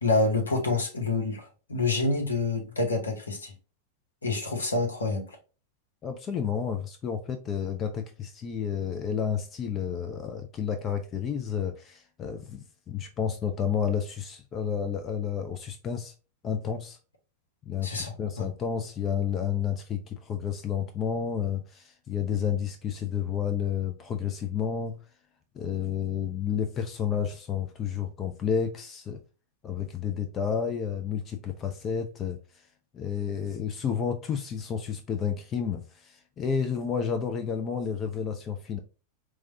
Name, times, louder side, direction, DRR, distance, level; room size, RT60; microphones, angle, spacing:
voice 1, 0.0-3.5 4.2-5.4 17.8-18.5, left 3 dB, 75° left, 0.9 m, -27 dB
voice 2, 6.0-16.1 16.4-17.0 17.6-25.0 25.5-29.2 29.6-32.4 32.9-38.8, left 7 dB, 30° left, 0.4 m, -31 dB
4.7 x 2.2 x 2.6 m
figure-of-eight pair, 90°, 0 cm